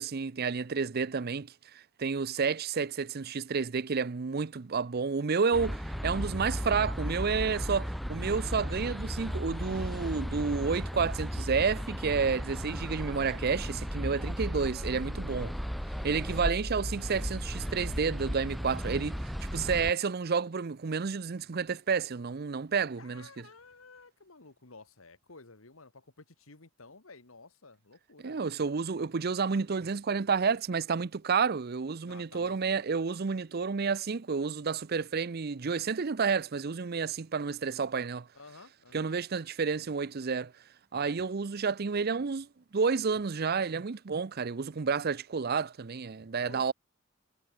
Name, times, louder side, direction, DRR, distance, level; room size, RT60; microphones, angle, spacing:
voice 1, 0.0-15.5 16.0-23.3 28.2-38.3 38.9-40.5 40.9-42.5 42.7-46.7, right 5 dB, 50° right, 0.6 m, -30 dB
sound 1, 5.5-19.9, equal, ahead, 0.6 m, -35 dB
voice 2, 15.3-15.7 16.6-17.0 22.9-28.4 32.0-32.7 38.3-39.1 46.4-46.7, left 3 dB, 90° left, 2.3 m, -53 dB
head